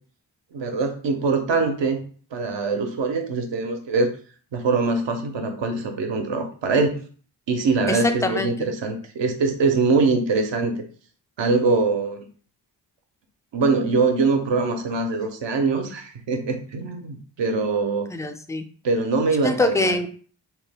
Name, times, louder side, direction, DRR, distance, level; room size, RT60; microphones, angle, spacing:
voice 1, 0.5-2.0 2.3-4.1 4.5-7.0 7.5-10.8 11.4-12.3 13.5-18.1 18.8-20.0, right 3 dB, 70° right, 5 dB, 0.8 m, -23 dB
voice 2, 7.9-8.5 18.1-18.6 19.4-20.1, left 2 dB, 5° left, 7 dB, 0.3 m, -23 dB
3.0 x 2.1 x 3.4 m, 0.43 s
cardioid pair, 50°, 46 cm